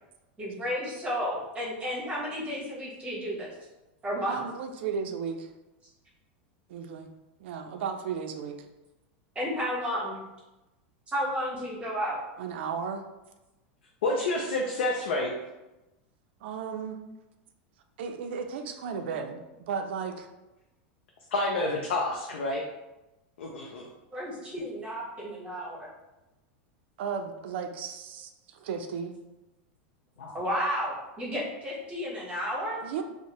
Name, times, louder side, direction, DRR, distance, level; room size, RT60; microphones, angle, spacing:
voice 1, 0.4-3.5 4.0-4.4 9.3-10.2 11.1-12.2 24.1-25.8 30.3-32.8, equal, 20° right, -5 dB, 1.1 m, -32 dB
voice 2, 4.2-5.5 6.7-7.1 7.4-8.6 12.4-13.0 16.4-17.0 18.0-20.3 27.0-29.2 32.8-33.0, right 6 dB, 75° right, 7 dB, 0.4 m, -34 dB
voice 3, 14.0-15.3 21.3-22.6 23.4-23.9 30.2-30.4, left 2 dB, 85° left, 0 dB, 0.4 m, -29 dB
2.6 x 2.0 x 2.9 m, 1.0 s
supercardioid pair, 120°, 6 cm